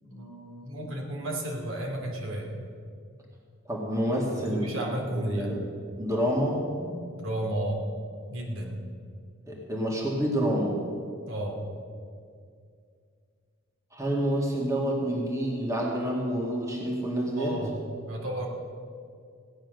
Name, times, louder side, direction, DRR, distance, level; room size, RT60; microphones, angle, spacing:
voice 1, 0.0-2.5 4.4-5.5 7.1-7.8 8.3-8.8 11.3-11.6 17.3-17.7 18.1-18.5, right 1 dB, 65° right, -1 dB, 2.8 m, -33 dB
voice 2, 3.7-4.7 5.3-5.6 6.0-7.0 9.5-10.8 13.9-17.5, equal, 15° right, -2 dB, 2.1 m, -28 dB
16.5 x 10.0 x 6.5 m, 2.2 s
head